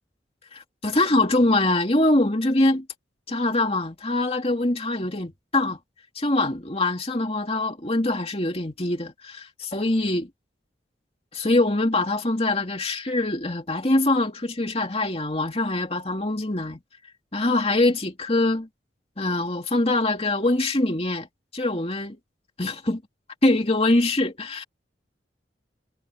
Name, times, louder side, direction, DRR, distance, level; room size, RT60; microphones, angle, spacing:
voice 1, 0.5-2.9 3.3-5.8 6.1-10.3 11.3-16.8 17.3-18.7 19.2-21.3 21.5-22.2 22.6-23.0 23.4-24.6, left 2 dB, 35° left, 2.6 m, -23 dB
head